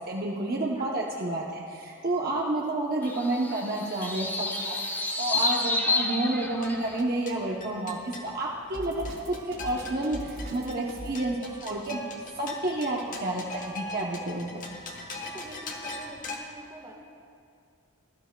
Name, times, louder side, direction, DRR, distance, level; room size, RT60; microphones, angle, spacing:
voice 1, 0.0-4.8 5.2-11.4 11.6-12.0 12.3-14.6, right 2 dB, 45° right, -3 dB, 0.8 m, -30 dB
sound 1, 3.0-7.0, left 2 dB, 10° left, 0.6 m, -30 dB
sound 2, 6.4-16.4, left 2 dB, 40° left, 1.1 m, -42 dB
Drum kit, 8.7-11.2, equal, 65° right, 3.0 m, -39 dB
voice 2, 15.2-16.9, right 1 dB, 20° right, -1 dB, 1.4 m, -46 dB
20.0 x 12.5 x 2.3 m, 2.4 s
head